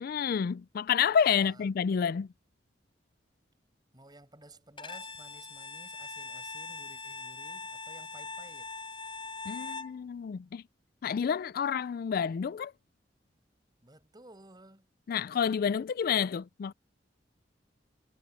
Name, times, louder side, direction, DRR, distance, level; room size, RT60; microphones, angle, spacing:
voice 1, 0.0-2.3 9.5-10.6 11.0-12.7 15.1-16.7, left 7 dB, 55° left, 0.3 m, -29 dB
voice 2, 1.4-1.7 3.9-8.8 13.8-14.9, right 2 dB, 25° right, 7.7 m, -55 dB
Bowed string instrument, 4.8-10.0, left 4 dB, 30° left, 6.8 m, -42 dB
head